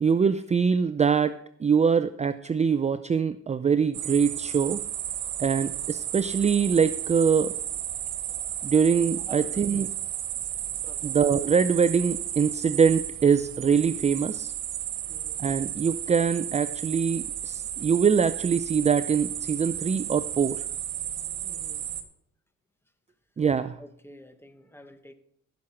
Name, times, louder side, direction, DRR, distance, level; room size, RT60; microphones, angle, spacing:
voice 1, 0.0-4.8 5.4-7.5 8.6-9.9 11.0-14.5 15.4-20.6 23.4-23.8, right 6 dB, 25° right, 13 dB, 0.5 m, -23 dB
sound 1, 3.9-22.0, right 11 dB, 85° right, 1.4 m, -33 dB
voice 2, 9.3-9.9 10.9-11.2 15.1-15.4 21.4-21.8 23.8-25.1, equal, 10° left, 9 dB, 1.3 m, -48 dB
15.5 x 6.4 x 5.8 m, 0.71 s
cardioid pair, 90°, 30 cm